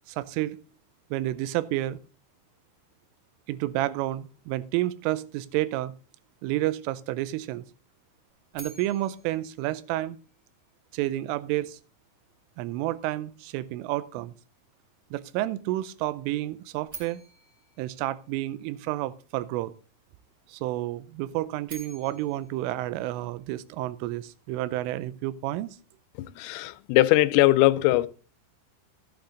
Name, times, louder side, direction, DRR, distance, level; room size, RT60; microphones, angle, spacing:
voice 1, 0.1-0.6 1.1-2.0 3.5-5.9 6.4-7.6 8.5-10.2 10.9-11.8 12.6-14.3 15.1-17.2 17.8-19.7 20.5-25.7, right 15 dB, 85° right, 3.3 m, -30 dB
sound 1, 8.5-10.7 16.9-19.0 21.4-23.8, right 3 dB, 20° right, 2.4 m, -49 dB
voice 2, 26.2-28.1, left 16 dB, 90° left, 3.3 m, -21 dB
14.5 x 8.7 x 3.8 m
omnidirectional pair, 5.7 m